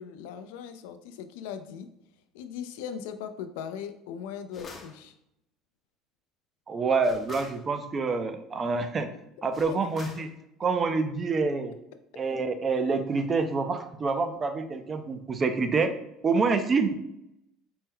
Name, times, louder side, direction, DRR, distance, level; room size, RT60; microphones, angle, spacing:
voice 1, 0.0-1.9 2.3-5.1 9.4-9.9, left 8 dB, 85° left, 9 dB, 0.3 m, -39 dB
sound 1, 4.5-5.0 7.0-7.6 9.5-10.3, left 3 dB, 30° left, 0.5 m, -43 dB
voice 2, 6.7-9.1 9.4-10.3 10.6-11.7 12.2-15.9 16.2-16.9, right 4 dB, 30° right, 9 dB, 0.4 m, -27 dB
4.2 x 2.1 x 3.6 m, 0.81 s
supercardioid pair, 115°, 0 cm